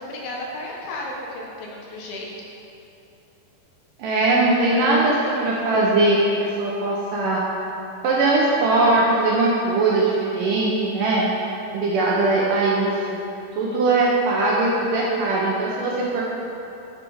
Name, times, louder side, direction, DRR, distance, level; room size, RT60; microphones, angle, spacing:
voice 1, 0.0-2.3, left 1 dB, 70° left, -2 dB, 2.9 m, -33 dB
voice 2, 4.0-7.4 8.0-11.3 11.7-13.2 13.6-16.2, right 2 dB, 70° right, -4 dB, 2.1 m, -20 dB
9.3 x 7.9 x 4.7 m, 2.9 s
omnidirectional pair, 4.7 m